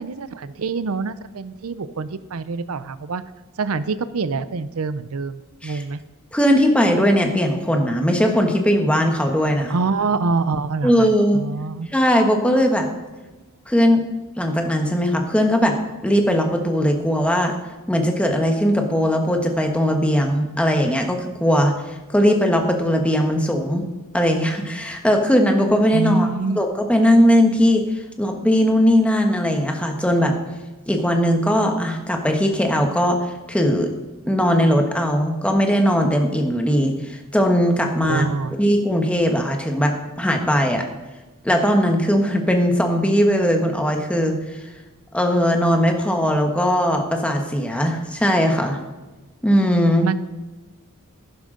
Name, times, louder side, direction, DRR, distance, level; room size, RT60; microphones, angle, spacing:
voice 1, 0.0-3.2 3.6-6.0 9.7-11.9 25.9-26.6 38.0-38.5 50.0-50.1, right 4 dB, 80° right, 14 dB, 0.6 m, -25 dB
voice 2, 6.3-9.7 10.8-11.4 11.9-12.9 13.7-14.0 14.4-15.8 16.0-17.5 17.9-21.7 22.1-23.9 24.1-26.3 26.6-27.8 28.2-30.3 30.9-33.2 33.5-33.9 34.3-38.2 38.6-40.8 41.4-44.4 45.1-48.8 49.4-50.1, equal, 5° left, 3 dB, 1.2 m, -19 dB
11.5 x 10.5 x 3.8 m, 1.1 s
head